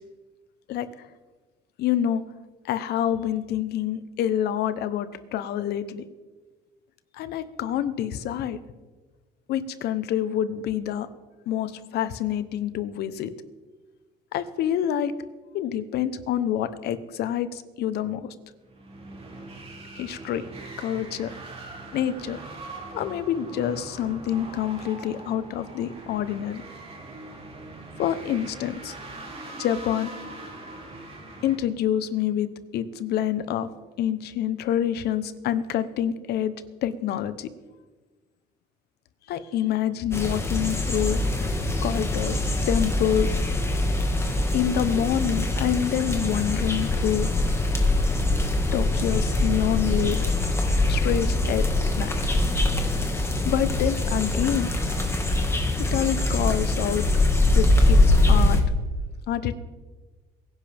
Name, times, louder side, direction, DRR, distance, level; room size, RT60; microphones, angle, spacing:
voice 1, 1.8-2.2 2.7-6.0 7.2-8.6 9.5-11.1 11.5-13.3 14.3-15.1 15.5-18.3 19.9-20.4 20.8-21.3 21.9-22.4 22.9-26.6 28.0-28.9 29.6-30.1 31.4-32.5 32.7-33.7 34.0-36.5 36.8-37.5 39.3-41.2 41.8-43.4 44.5-47.3 48.7-50.2 50.9-51.6 52.0-52.1 53.5-54.7 55.9-57.1 57.5-58.0 58.3-58.6 59.3-59.6, left 10 dB, 75° left, 12 dB, 1.0 m, -27 dB
sound 1, 18.7-31.6, right 2 dB, 35° right, 3.2 m, -41 dB
sound 2, 40.1-58.6, left 2 dB, 15° left, 2.0 m, -23 dB
23.0 x 10.5 x 3.6 m, 1.3 s
cardioid pair, 110°, 17 cm